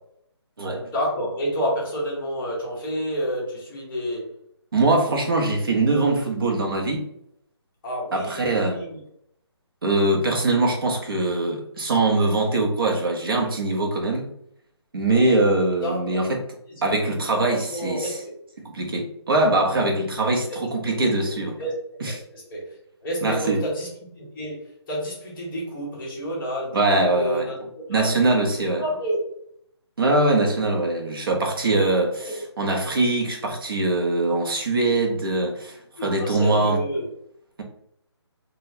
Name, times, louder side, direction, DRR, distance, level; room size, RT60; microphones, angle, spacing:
voice 1, 0.7-4.3 7.8-9.0 15.8-16.2 16.7-17.1 17.5-18.3 20.5-20.6 20.8-21.1 21.6-21.7 22.0-23.9 24.1-28.1 28.5-29.2 32.2-32.4 36.0-37.1, equal, 10° left, -10 dB, 0.6 m, -30 dB
voice 2, 4.7-7.1 8.1-8.8 9.8-14.3 14.9-16.4 16.8-18.1 18.7-21.5 22.0-22.1 23.2-23.6 26.7-27.5 27.9-28.8 30.0-36.8, right 2 dB, 55° right, 1 dB, 0.9 m, -22 dB
4.0 x 2.2 x 2.7 m, 0.71 s
hypercardioid pair, 170°, 14 cm